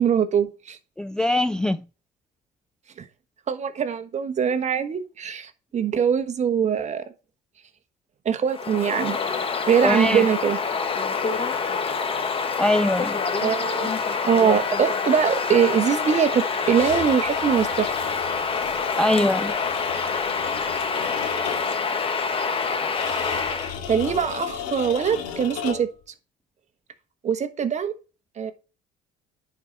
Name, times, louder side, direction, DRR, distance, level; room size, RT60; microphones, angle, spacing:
voice 1, 0.0-0.8 3.0-3.1 3.5-7.0 8.2-9.2 9.7-10.6 13.4-13.9 14.2-17.9 23.9-25.9 27.2-27.9 28.4-28.5, right 7 dB, 40° right, 1.2 m, -22 dB
voice 2, 1.0-1.8 9.8-10.3 12.6-13.2 19.0-19.5, left 1 dB, 5° left, 0.3 m, -22 dB
Bird vocalization bird call bird song, 8.5-23.8, left 5 dB, 30° left, 1.3 m, -26 dB
sound 1, 16.6-21.9 22.9-26.0, left 7 dB, 85° left, 2.1 m, -35 dB
10.0 x 4.7 x 3.9 m
supercardioid pair, 90°, 19 cm